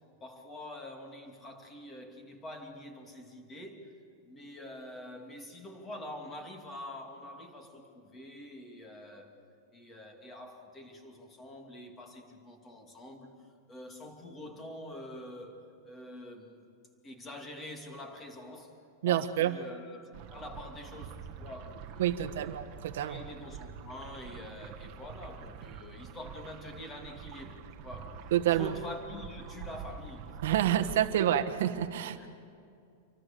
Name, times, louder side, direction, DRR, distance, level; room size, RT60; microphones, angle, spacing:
voice 1, 0.2-9.4 9.7-16.7 17.0-22.5 22.9-30.9 31.2-31.3 32.2-32.3, left 1 dB, 15° left, 2.7 m, -46 dB
voice 2, 19.0-19.5 22.0-23.2 28.3-28.7 30.4-32.3, right 11 dB, 65° right, 1.4 m, -28 dB
sound 1, 20.1-31.1, right 8 dB, 40° right, 1.6 m, -46 dB
28.0 x 24.0 x 6.9 m
supercardioid pair, 170°, 0 cm